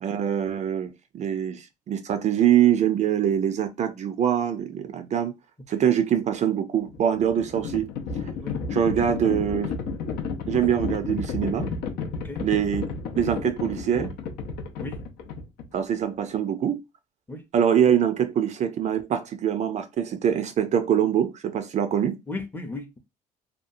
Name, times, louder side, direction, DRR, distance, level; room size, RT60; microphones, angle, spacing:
voice 1, 0.0-5.3 5.7-7.9 8.7-9.7 10.5-11.7 12.4-14.1 15.7-16.8 17.5-22.2, right 9 dB, 45° right, 0.4 m, -24 dB
Livestock farm animals working animals, 6.8-15.8, left 5 dB, 80° left, 0.6 m, -32 dB
voice 2, 22.3-23.0, left 2 dB, 10° left, 0.5 m, -35 dB
2.8 x 2.3 x 2.5 m
cardioid pair, 110°, 17 cm